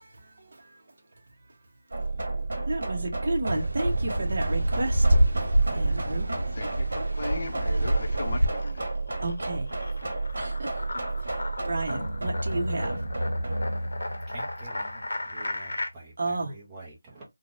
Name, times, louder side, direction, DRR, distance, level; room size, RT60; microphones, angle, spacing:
sound 1, 1.9-15.6, right 2 dB, 55° right, 1.1 m, -32 dB
voice 1, 2.7-5.0 5.7-6.2 9.2-9.7 10.4-10.7 11.6-13.0 16.2-16.5, right 2 dB, 35° right, 0.8 m, -31 dB
sound 2, 3.5-8.5, right 1 dB, 90° right, 0.5 m, -26 dB
voice 2, 5.4-6.0 14.3-17.2, right 3 dB, 10° right, 0.5 m, -47 dB
sound 3, 6.0-6.8 7.1-15.9, left 2 dB, 75° left, 0.7 m, -37 dB
voice 3, 6.5-8.9, left 2 dB, 30° left, 0.6 m, -38 dB
3.7 x 2.0 x 2.5 m
figure-of-eight pair, 175°, 0 cm